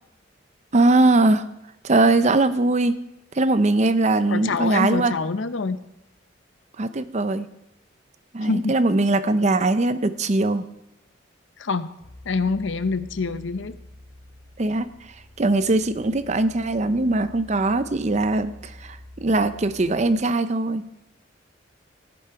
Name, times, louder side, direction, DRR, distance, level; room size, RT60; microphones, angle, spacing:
voice 1, 0.7-1.5 1.8-3.0 3.4-5.1 6.8-7.5 8.3-10.6 14.6-14.9 15.4-20.9, right 2 dB, 35° right, 13 dB, 0.6 m, -21 dB
voice 2, 4.3-5.8 8.4-8.7 11.6-11.9 12.3-13.8, left 4 dB, 75° left, 12 dB, 0.7 m, -25 dB
sound 1, 12.0-20.2, left 1 dB, 70° right, 5.4 m, -46 dB
15.5 x 10.5 x 4.7 m, 0.88 s
head